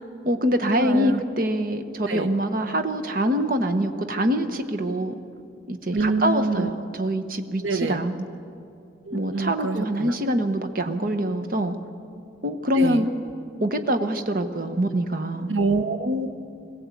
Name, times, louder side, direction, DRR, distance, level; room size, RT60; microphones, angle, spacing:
voice 1, 0.2-5.1 5.7-8.3 9.1-11.7 12.4-13.1 13.6-15.5, equal, 45° right, 7 dB, 1.0 m, -24 dB
voice 2, 0.8-1.2 2.1-2.3 5.9-6.7 7.6-8.0 9.1-10.1 12.8-13.1 15.5-16.3, right 3 dB, 80° right, 10 dB, 0.8 m, -26 dB
21.0 x 16.5 x 8.3 m, 2.5 s
head